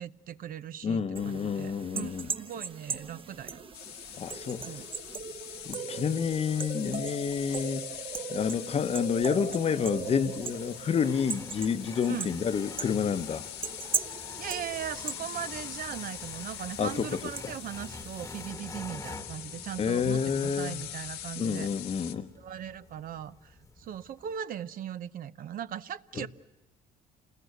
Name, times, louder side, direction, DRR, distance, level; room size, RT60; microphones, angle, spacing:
voice 1, 0.0-3.6 4.6-4.9 12.1-12.3 14.4-21.7 22.4-26.3, right 10 dB, 55° right, 0.8 m, -39 dB
voice 2, 0.8-2.3 4.2-4.8 5.6-7.9 8.3-13.4 16.8-17.1 19.8-20.8 21.4-22.3 26.2-26.3, left 6 dB, 35° left, 0.9 m, -29 dB
sound 1, 1.2-18.5, right 5 dB, 30° right, 1.1 m, -39 dB
sound 2, 3.7-22.1, left 13 dB, 85° left, 1.7 m, -43 dB
sound 3, 9.7-24.4, left 3 dB, 20° left, 1.3 m, -48 dB
28.0 x 20.5 x 8.2 m
cardioid pair, 110°, 17 cm